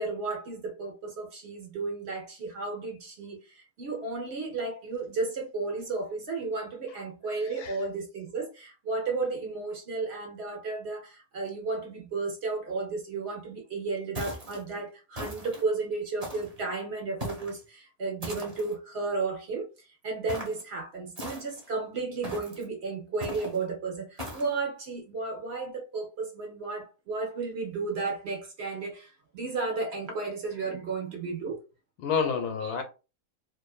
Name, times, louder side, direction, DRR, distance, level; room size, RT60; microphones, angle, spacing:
voice 1, 0.0-31.6, right 3 dB, 55° right, 0.7 m, -33 dB
voice 2, 7.4-7.8 32.0-32.8, left 6 dB, 85° left, 1.1 m, -29 dB
sound 1, 14.2-14.6 15.1-15.6 16.2-16.6 17.2-17.6 18.2-18.7 20.3-20.6 21.2-21.7 22.2-22.6 23.2-23.6 24.2-24.5, equal, 30° right, 0.9 m, -39 dB
2.6 x 2.5 x 2.3 m
omnidirectional pair, 1.6 m